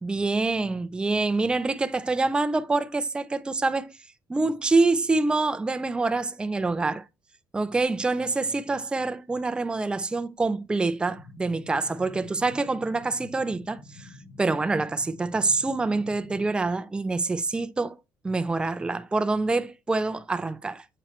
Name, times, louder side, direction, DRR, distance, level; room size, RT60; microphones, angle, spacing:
voice 1, 0.0-3.9 4.3-7.0 7.5-14.1 14.4-18.0 18.2-20.8, right 3 dB, 10° right, 0.4 m, -26 dB
sound 1, 11.0-16.5, left 2 dB, 75° left, 2.8 m, -48 dB
7.8 x 6.0 x 3.1 m
cardioid pair, 125°, 8 cm